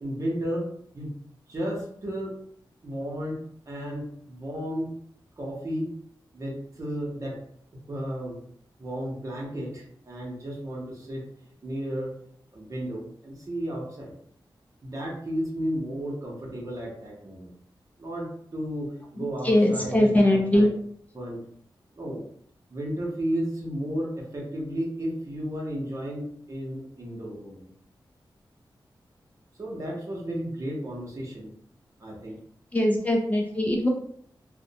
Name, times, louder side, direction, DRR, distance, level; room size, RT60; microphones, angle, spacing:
voice 1, 0.0-0.7 0.9-1.1 1.5-2.3 2.8-3.4 3.7-4.9 5.4-5.9 6.3-7.4 7.9-8.4 8.8-11.2 11.6-12.1 12.5-14.1 14.8-17.5 18.0-20.7 21.1-21.4 22.0-22.2 22.7-27.7 29.6-31.5 32.0-32.4, equal, 40° right, -2 dB, 0.7 m, -33 dB
voice 2, 19.2-20.7 32.7-33.9, left 1 dB, 20° left, 0 dB, 0.4 m, -21 dB
2.4 x 2.1 x 2.7 m, 0.65 s
wide cardioid pair, 130°, 8 cm